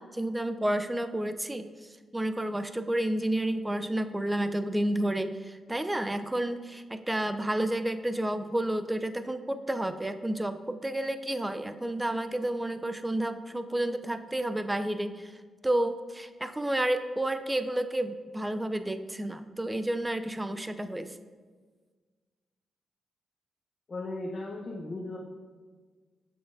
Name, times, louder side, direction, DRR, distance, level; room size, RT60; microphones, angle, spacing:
voice 1, 0.0-1.7 2.1-15.4 15.6-21.1, right 1 dB, 15° right, 10 dB, 0.4 m, -30 dB
voice 2, 23.9-25.2, left 2 dB, 45° left, -3 dB, 0.8 m, -36 dB
6.9 x 6.3 x 2.6 m, 1.5 s
cardioid pair, 70°, 0 cm